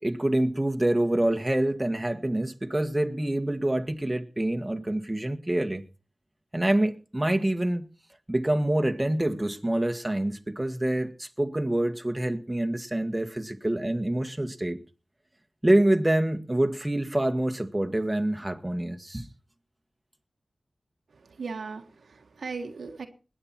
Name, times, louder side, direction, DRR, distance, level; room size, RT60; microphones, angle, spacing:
voice 1, 0.0-5.8 6.5-7.9 8.3-14.8 15.6-19.3, right 1 dB, 20° right, 1.7 m, -26 dB
voice 2, 21.1-23.1, right 4 dB, 90° right, 1.5 m, -38 dB
21.0 x 8.9 x 4.3 m
cardioid pair, 45°, 0 cm